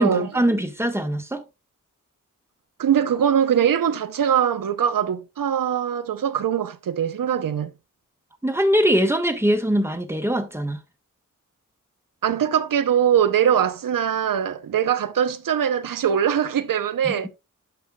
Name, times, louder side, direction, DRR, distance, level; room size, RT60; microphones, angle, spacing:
voice 1, 0.0-1.4 8.4-10.8 17.0-17.3, equal, 10° right, 1.2 m, -22 dB
voice 2, 2.8-7.7 12.2-17.3, right 9 dB, 90° right, 0.6 m, -22 dB
12.5 x 5.5 x 2.2 m
wide cardioid pair, 105°, 32 cm